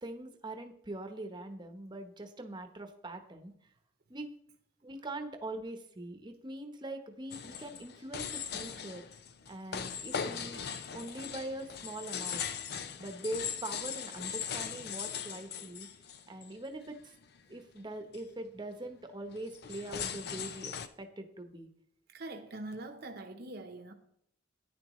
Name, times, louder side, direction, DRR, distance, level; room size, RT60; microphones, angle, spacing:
voice 1, 0.0-3.5 4.1-4.3 4.8-9.0 9.5-10.6 10.9-12.4 13.0-15.9 16.3-17.1 17.5-21.7, right 1 dB, 25° right, 6 dB, 1.0 m, -42 dB
sound 1, 7.3-16.7 17.1-17.4 17.8-17.9 18.1-18.4 19.3-20.9, left 7 dB, 55° left, 0.6 m, -39 dB
voice 2, 22.1-23.9, right 2 dB, 55° right, 4 dB, 1.0 m, -43 dB
11.0 x 9.7 x 3.1 m, 0.70 s
head